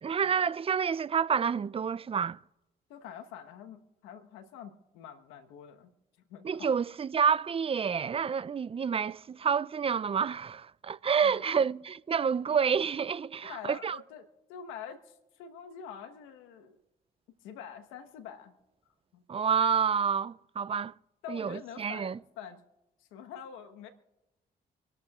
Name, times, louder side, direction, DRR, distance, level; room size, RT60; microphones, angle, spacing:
voice 1, 0.0-2.4 6.4-14.0 19.3-20.9 21.3-22.2, right 6 dB, 30° right, 0.4 m, -29 dB
voice 2, 2.9-5.9 6.3-6.8 11.2-11.6 13.4-16.8 17.4-18.5 19.1-19.2 21.2-22.6 23.0-23.9, left 8 dB, 80° left, 1.3 m, -46 dB
26.0 x 12.5 x 2.4 m
hypercardioid pair, 50°, 20 cm